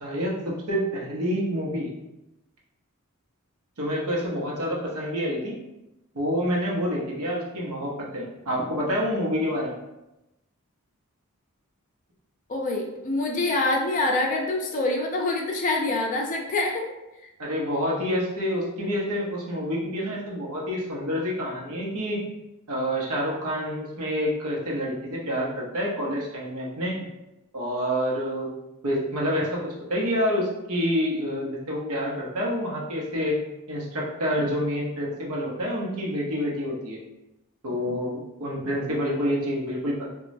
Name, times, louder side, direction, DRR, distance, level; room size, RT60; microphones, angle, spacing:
voice 1, 0.0-1.9 3.8-5.6 6.1-9.8 17.4-22.2 22.7-27.0 27.5-28.5 28.8-33.4 33.7-37.0 37.6-40.1, equal, 80° right, -3 dB, 0.8 m, -28 dB
voice 2, 12.5-16.9, left 2 dB, 35° left, 1 dB, 0.4 m, -25 dB
3.0 x 2.2 x 2.6 m, 0.94 s
head